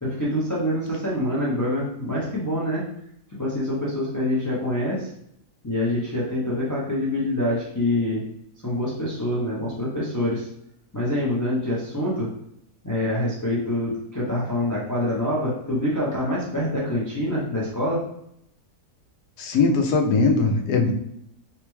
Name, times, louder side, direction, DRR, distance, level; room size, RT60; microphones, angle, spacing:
voice 1, 0.0-2.8 3.3-5.1 5.6-8.2 8.6-10.5 10.9-12.3 12.8-18.0, left 1 dB, 30° left, -6 dB, 0.3 m, -25 dB
voice 2, 19.4-20.9, left 4 dB, 90° left, 2 dB, 1.2 m, -20 dB
4.0 x 2.2 x 3.0 m, 0.73 s
omnidirectional pair, 1.7 m